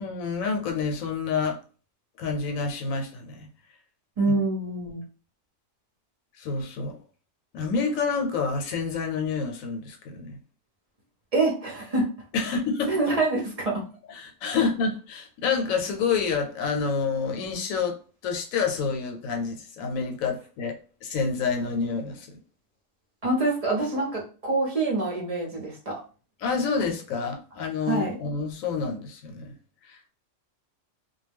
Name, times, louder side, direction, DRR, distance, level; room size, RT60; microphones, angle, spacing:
voice 1, 0.0-1.6 2.2-3.5 4.2-4.3 6.4-7.0 7.5-10.4 12.3-13.2 14.1-18.0 18.2-20.8 21.0-22.4 26.4-29.5 29.9-30.1, left 5 dB, 85° left, 1.0 m, -28 dB
voice 2, 4.2-5.0 11.3-12.1 12.9-13.8 14.5-14.6 23.2-26.0 27.9-28.2, right 2 dB, 40° right, 0.6 m, -26 dB
2.2 x 2.2 x 3.3 m
omnidirectional pair, 1.4 m